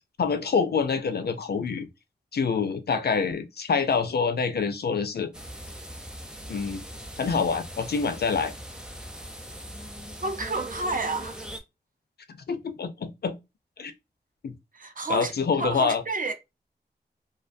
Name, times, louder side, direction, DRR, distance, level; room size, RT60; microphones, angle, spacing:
voice 1, 0.2-1.9 2.3-5.3 6.5-6.8 7.2-8.5 12.3-13.3 13.8-13.9 14.4-14.5 15.1-16.0, left 5 dB, 65° left, 0.4 m, -26 dB
sound 1, 5.3-11.6, right 1 dB, 5° right, 0.6 m, -40 dB
voice 2, 10.2-11.4 14.7-15.3 15.6-16.3, right 3 dB, 50° right, 0.6 m, -30 dB
2.3 x 2.2 x 2.5 m
wide cardioid pair, 65°, 18 cm